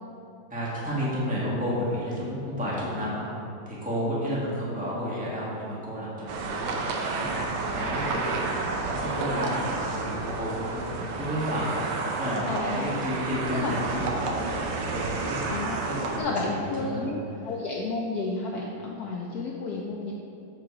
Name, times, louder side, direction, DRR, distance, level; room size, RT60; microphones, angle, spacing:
voice 1, 0.5-3.2 3.6-6.7 7.2-15.5 15.9-17.0, equal, 5° right, -7 dB, 1.2 m, -32 dB
voice 2, 3.9-4.4 12.5-12.9 13.5-13.7 15.5-15.8 16.2-17.2 17.4-20.1, left 3 dB, 85° left, -1 dB, 0.8 m, -32 dB
sound 1, 6.3-16.2, right 3 dB, 85° right, 1.7 m, -30 dB
7.4 x 4.9 x 4.7 m, 2.7 s
omnidirectional pair, 2.3 m